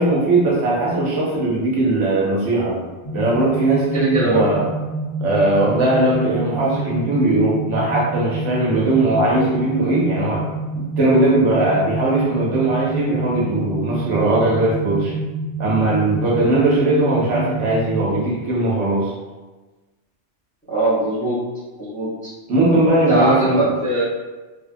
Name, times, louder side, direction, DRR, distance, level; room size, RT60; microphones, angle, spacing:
voice 1, 0.0-2.8 3.1-4.6 5.2-10.4 10.8-15.1 15.6-19.1 22.5-23.6, right 2 dB, 75° right, -4 dB, 1.0 m, -19 dB
sound 1, 3.0-18.1, right 2 dB, 60° left, 1.2 m, -27 dB
voice 2, 3.9-4.5 20.7-21.4 21.8-22.1 23.1-24.0, right 1 dB, 10° left, -11 dB, 0.6 m, -20 dB
3.0 x 2.1 x 2.5 m, 1.2 s
omnidirectional pair, 1.3 m